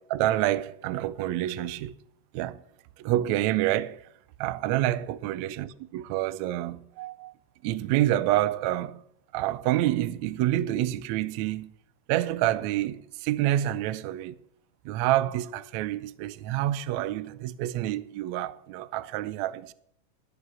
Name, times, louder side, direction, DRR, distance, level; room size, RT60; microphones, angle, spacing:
voice 1, 0.0-1.9 2.3-2.6 3.0-4.0 4.4-5.7 5.9-7.3 7.6-9.0 9.3-11.7 12.1-14.4 14.8-19.7, right 14 dB, 85° right, 1.6 m, -27 dB
13.5 x 6.8 x 7.4 m
omnidirectional pair, 3.9 m